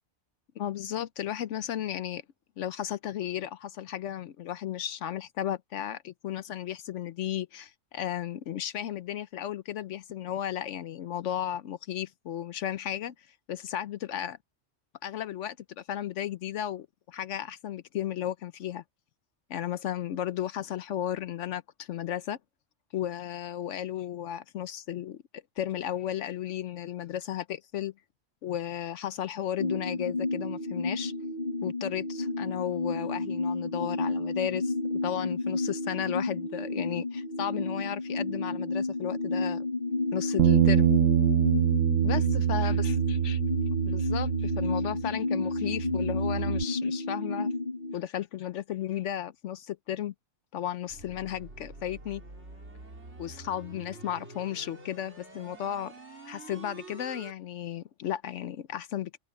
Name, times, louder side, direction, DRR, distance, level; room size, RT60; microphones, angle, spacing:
voice 1, 0.6-2.2 2.6-13.1 13.5-14.4 15.0-18.8 19.5-22.4 22.9-27.9 28.4-31.1 31.6-39.7 40.1-40.9 42.0-43.4 43.9-47.5 47.9-50.1 50.5-52.2 53.2-55.9 56.3-59.2, left 11 dB, 75° left, 1.0 m, -34 dB
sound 1, 29.6-48.0, left 2 dB, 40° left, 1.6 m, -31 dB
Bass guitar, 40.4-45.2 45.4-46.6, right 9 dB, 85° right, 1.2 m, -25 dB
sound 2, 50.9-57.3, right 2 dB, 60° right, 4.0 m, -47 dB
open air
omnidirectional pair, 1.3 m